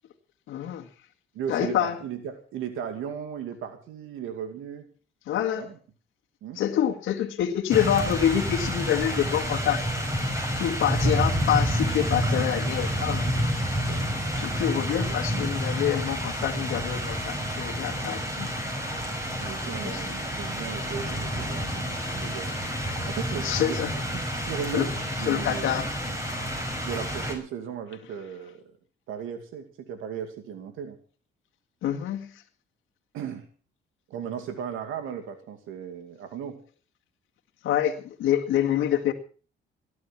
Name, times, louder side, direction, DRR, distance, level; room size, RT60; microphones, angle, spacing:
voice 1, 0.5-0.9 1.5-2.0 5.3-5.7 6.6-9.9 10.5-13.5 14.4-18.5 19.7-20.0 23.4-23.9 24.7-24.9 25.3-25.9 26.2-26.6 31.8-32.3 37.6-39.1, left 10 dB, 85° left, 3 dB, 1.9 m, -27 dB
voice 2, 1.3-4.9 5.5-5.7 6.4-6.6 7.8-7.9 11.0-11.2 12.4-12.6 13.8-14.0 14.7-15.0 19.4-22.5 23.1-24.0 24.5-25.8 26.8-28.7 29.1-31.0 33.1-33.4 34.1-36.6, right 8 dB, 90° right, 8 dB, 2.3 m, -36 dB
sound 1, 7.7-27.3, equal, 15° right, 5.8 m, -29 dB
18.0 x 11.5 x 5.9 m, 0.40 s
cardioid pair, 90°, 20 cm